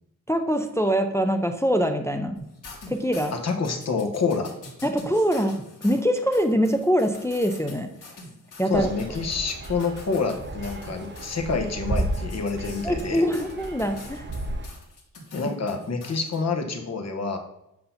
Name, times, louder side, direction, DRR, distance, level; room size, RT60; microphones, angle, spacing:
voice 1, 0.3-2.4 2.9-3.3 4.8-5.6 5.8-7.9 8.6-8.9 12.8-14.2, equal, 10° left, 6 dB, 0.3 m, -23 dB
sound 1, 2.3-11.4 12.0-16.4, left 2 dB, 65° left, 1.6 m, -44 dB
voice 2, 3.3-4.5 8.7-13.2 15.3-17.4, left 4 dB, 50° left, 5 dB, 0.9 m, -27 dB
sound 2, 8.7-14.7, right 1 dB, 35° right, 0.7 m, -33 dB
7.8 x 2.7 x 5.7 m, 0.82 s
wide cardioid pair, 160°, 34 cm